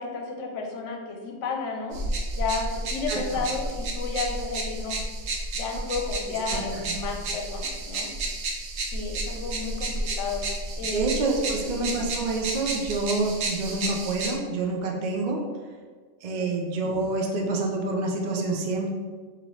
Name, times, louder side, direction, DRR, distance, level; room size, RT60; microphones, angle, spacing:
voice 1, 0.0-2.0 2.3-5.0 5.5-8.1 8.9-10.4 10.8-11.0 11.6-11.7 16.4-16.5, left 4 dB, 70° left, 1 dB, 0.9 m, -32 dB
sound 1, 1.9-14.3, right 2 dB, 85° right, 1.1 m, -31 dB
voice 2, 3.1-3.4 6.5-7.0 10.9-15.4 16.2-18.9, right 3 dB, 65° right, 0 dB, 0.4 m, -27 dB
3.9 x 2.9 x 3.0 m, 1.5 s
omnidirectional pair, 1.3 m